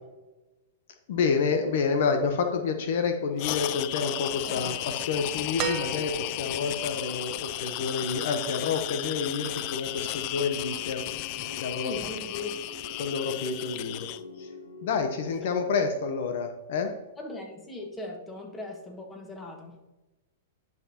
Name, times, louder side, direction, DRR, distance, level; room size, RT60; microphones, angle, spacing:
voice 1, 1.1-11.0 11.6-12.0 13.0-14.1 14.4-14.5 14.8-17.0, left 5 dB, 65° left, 6 dB, 0.9 m, -29 dB
sound 1, 3.4-14.2, left 16 dB, 45° left, 0.3 m, -34 dB
voice 2, 4.5-4.9 11.8-12.6 17.2-19.8, left 2 dB, 15° left, 1 dB, 1.7 m, -39 dB
sound 2, 5.6-6.6 8.1-8.2, right 8 dB, 35° right, 0.9 m, -34 dB
sound 3, 9.0-15.7, left 3 dB, 85° left, 1.2 m, -46 dB
10.5 x 5.9 x 2.9 m, 1.1 s
hypercardioid pair, 125°, 0 cm